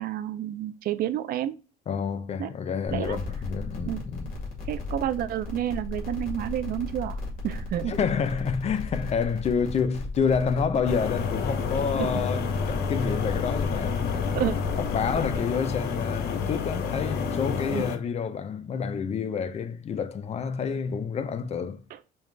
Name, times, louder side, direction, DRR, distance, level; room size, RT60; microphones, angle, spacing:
voice 1, 0.0-1.6 2.4-2.5 2.9-3.2 3.9-4.0 4.7-7.2 7.4-8.0 12.0-12.2 14.3-14.6 17.7-17.9 21.9-22.0, right 11 dB, 60° right, 0.5 m, -30 dB
voice 2, 1.9-4.3 7.9-14.4 14.8-21.8, left 6 dB, 40° left, 0.5 m, -28 dB
sound 1, 2.9-15.4, left 2 dB, 60° left, 1.9 m, -36 dB
sound 2, 10.9-18.0, left 6 dB, 75° left, 0.8 m, -29 dB
5.3 x 2.4 x 3.2 m
cardioid pair, 110°, 17 cm